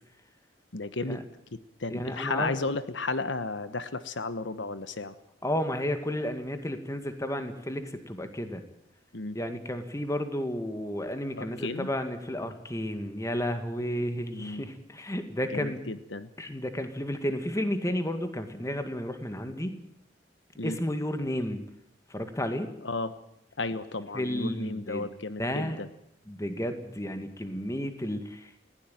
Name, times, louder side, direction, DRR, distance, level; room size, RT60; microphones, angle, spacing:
voice 1, 0.7-1.2 1.5-5.1 9.1-9.4 11.4-11.9 14.3-14.7 15.5-16.3 20.6-20.8 22.8-23.1 23.6-25.9, left 3 dB, 80° left, 12 dB, 1.2 m, -33 dB
voice 2, 1.9-2.5 5.4-8.6 9.3-15.8 16.4-19.8 20.6-21.6 22.1-22.7 24.1-25.1 25.4-25.8 26.3-28.6, equal, 15° left, 8 dB, 2.0 m, -32 dB
20.0 x 16.5 x 9.2 m, 0.77 s
head